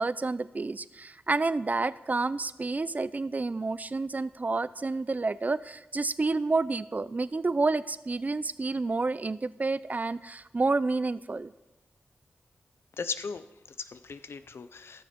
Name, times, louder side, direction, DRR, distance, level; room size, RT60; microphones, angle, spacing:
voice 1, 0.0-11.5, right 3 dB, 40° right, 17 dB, 0.5 m, -29 dB
voice 2, 12.9-15.0, left 5 dB, 70° left, 11 dB, 0.5 m, -38 dB
14.0 x 6.6 x 5.9 m, 1.0 s
cardioid pair, 40°, 4 cm